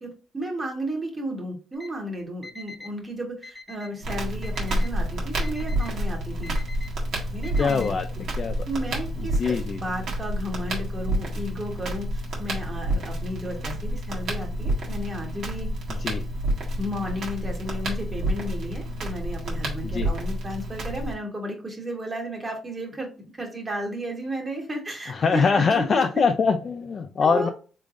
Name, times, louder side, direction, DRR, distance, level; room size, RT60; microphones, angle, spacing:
voice 1, 0.0-6.5 7.3-8.0 8.6-16.0 16.8-26.0 27.2-27.5, equal, 25° right, 1 dB, 1.3 m, -33 dB
Alarm, 1.7-1.9 2.4-2.9 3.4-3.9 4.4-4.9 5.4-5.9 6.4-6.9 7.4-7.9, left 3 dB, ahead, 1.0 m, -43 dB
Crackle, 4.0-21.1, right 1 dB, 70° right, 1.4 m, -29 dB
voice 2, 7.6-8.1 8.4-8.6 9.4-9.8 16.0-16.2 19.8-20.1 25.1-27.5, left 5 dB, 45° left, 7 dB, 0.4 m, -23 dB
3.5 x 3.3 x 2.5 m, 0.36 s
cardioid pair, 90°, 0 cm